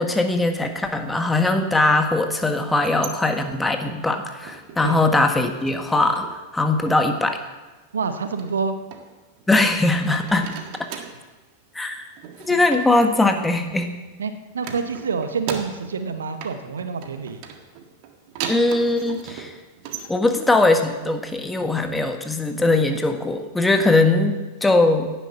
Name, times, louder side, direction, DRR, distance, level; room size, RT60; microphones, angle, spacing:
voice 1, 0.0-6.3 6.5-7.4 9.5-10.6 11.7-12.0 12.5-13.9 18.5-19.5 20.1-25.1, left 2 dB, 10° left, 5 dB, 1.6 m, -20 dB
sound 1, 2.8-4.9 5.2-6.5 6.7-7.3 8.4-9.7 10.0-11.3 12.2-14.1 14.6-16.1 16.4-20.1, right 7 dB, 45° right, 1.7 m, -38 dB
voice 2, 7.9-8.8 12.5-12.6 14.2-17.4, right 5 dB, 70° right, 9 dB, 1.1 m, -27 dB
17.0 x 10.5 x 5.8 m, 1.2 s
figure-of-eight pair, 90°, 0 cm